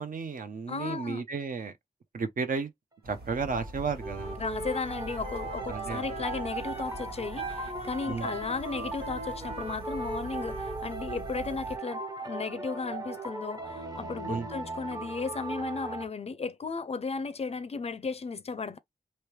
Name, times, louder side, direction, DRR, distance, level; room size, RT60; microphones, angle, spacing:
voice 1, 0.0-1.7 2.1-2.7 3.1-4.4 5.7-6.1 8.1-8.3 14.3-14.5, right 5 dB, 60° right, 0.7 m, -33 dB
voice 2, 0.7-1.2 4.4-18.8, left 4 dB, 40° left, 0.4 m, -35 dB
sound 1, 3.0-11.8, right 1 dB, 90° right, 2.2 m, -44 dB
sound 2, 3.2-16.1, right 3 dB, 25° right, 0.8 m, -39 dB
Wind instrument woodwind instrument, 4.0-10.8, right 2 dB, 40° right, 1.2 m, -40 dB
3.1 x 2.8 x 3.1 m
wide cardioid pair, 150°, 16 cm